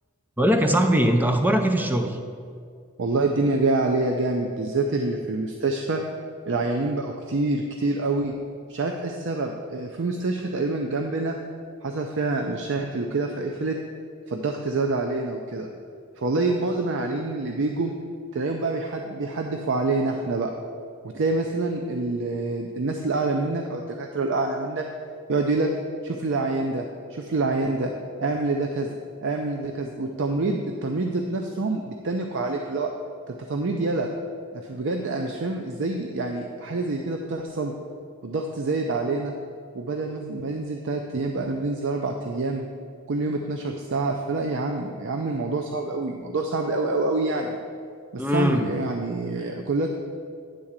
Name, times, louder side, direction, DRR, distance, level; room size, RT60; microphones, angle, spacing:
voice 1, 0.4-2.2 48.2-48.7, equal, 10° right, 5 dB, 0.5 m, -21 dB
voice 2, 3.0-6.0 6.5-8.3 8.7-11.3 11.8-13.8 14.3-15.7 16.2-17.9 18.3-20.5 21.1-24.8 25.3-25.7 26.0-27.9 28.2-28.9 29.2-32.9 33.3-34.1 34.5-37.7 38.2-39.3 39.7-42.6 43.1-47.6 48.1-50.0, right 3 dB, 60° right, 2 dB, 0.5 m, -26 dB
9.8 x 3.8 x 7.3 m, 2.2 s
head